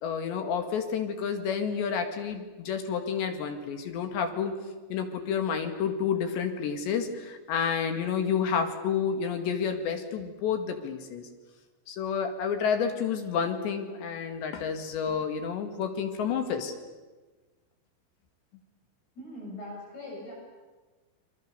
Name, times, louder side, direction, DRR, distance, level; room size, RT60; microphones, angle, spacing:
voice 1, 0.0-4.5 4.9-11.3 11.9-16.7, left 7 dB, 80° left, 6 dB, 4.3 m, -30 dB
voice 2, 19.2-20.3, left 1 dB, 65° left, -3 dB, 9.0 m, -41 dB
29.0 x 24.5 x 6.9 m, 1.3 s
omnidirectional pair, 5.0 m